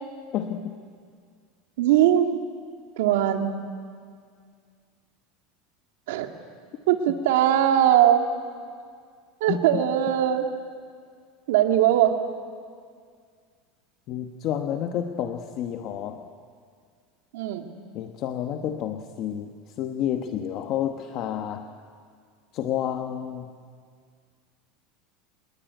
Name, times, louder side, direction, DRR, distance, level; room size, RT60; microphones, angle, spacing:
voice 1, 0.3-0.7 7.1-7.2 9.5-9.8 14.1-16.3 17.9-21.7 22.5-23.5, left 10 dB, 40° left, 6 dB, 1.1 m, -30 dB
voice 2, 1.8-2.3 3.0-3.5 6.1-6.3 6.9-8.2 9.4-10.4 11.5-12.1 17.3-17.6, right 11 dB, 80° right, 5 dB, 2.3 m, -20 dB
27.5 x 21.0 x 9.1 m, 2.1 s
supercardioid pair, 165°, 0 cm